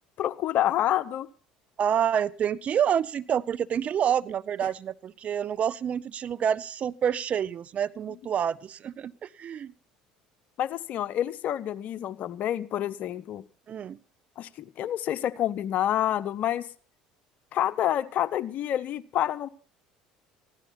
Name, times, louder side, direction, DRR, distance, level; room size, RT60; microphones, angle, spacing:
voice 1, 0.2-1.3 4.6-4.7 10.6-13.4 14.4-16.7 17.5-19.5, left 12 dB, 55° left, 13 dB, 0.9 m, -28 dB
voice 2, 1.8-9.7 13.7-14.0, right 8 dB, 45° right, 18 dB, 0.6 m, -28 dB
15.5 x 12.0 x 5.8 m, 0.43 s
hypercardioid pair, 70°, 3 cm